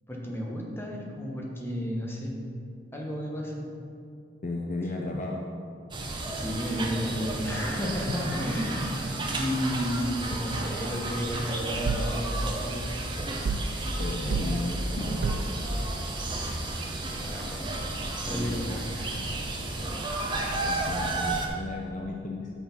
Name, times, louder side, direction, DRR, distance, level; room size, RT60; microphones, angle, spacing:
voice 1, 0.1-2.3 2.9-3.7 6.3-12.8 16.6-16.9 17.2-17.7 18.2-19.0 20.2-20.4, equal, 10° left, -2 dB, 0.9 m, -32 dB
voice 2, 4.4-5.4 14.0-15.2 18.2-18.8 20.6-22.5, left 2 dB, 40° left, 0 dB, 0.5 m, -34 dB
sound 1, 5.9-21.5, right 2 dB, 25° right, 0.7 m, -32 dB
sound 2, 11.8-12.2 13.4-13.8 14.3-14.6 15.2-15.6, right 4 dB, 50° right, 0.3 m, -28 dB
6.2 x 5.6 x 5.9 m, 2.4 s
head